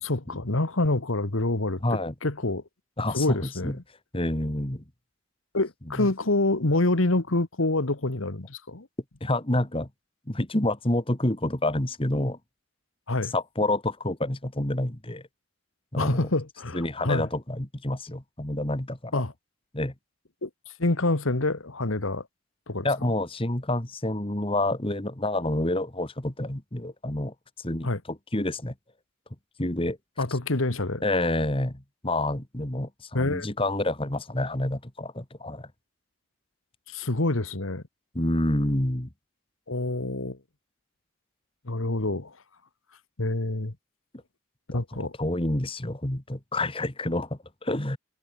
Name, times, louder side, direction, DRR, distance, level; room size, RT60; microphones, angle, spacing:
voice 1, 0.0-1.8 2.2-2.6 3.1-3.7 5.5-8.9 13.1-13.3 16.0-17.3 19.1-19.3 20.4-20.5 20.8-22.3 22.7-22.9 27.8-28.0 30.2-31.0 33.1-33.5 36.9-37.8 39.7-40.4 41.6-42.4 43.2-43.7 44.7-45.1, left 2 dB, 75° left, 1.7 m, -26 dB
voice 2, 1.8-2.1 3.0-3.8 4.1-4.8 6.0-6.1 9.2-9.9 10.3-12.4 13.3-15.2 15.9-16.3 16.7-19.1 19.7-19.9 22.8-28.7 29.6-30.0 31.0-35.7 38.1-39.1 44.7-48.0, left 1 dB, 25° left, 1.9 m, -28 dB
head